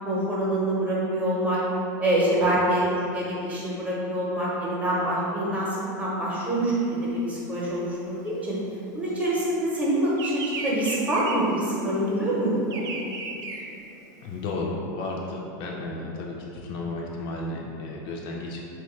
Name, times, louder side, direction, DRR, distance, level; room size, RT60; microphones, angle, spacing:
voice 1, 0.1-1.6 2.0-6.9 7.3-8.6 8.9-12.8, right 1 dB, 15° right, -7 dB, 0.8 m, -25 dB
Bird vocalization bird call bird song, 6.5-9.4 9.7-14.4, right 3 dB, 35° right, 0.3 m, -36 dB
voice 2, 14.2-18.6, left 2 dB, 50° left, -2 dB, 0.4 m, -33 dB
3.1 x 2.2 x 3.1 m, 2.8 s
supercardioid pair, 125°, 10 cm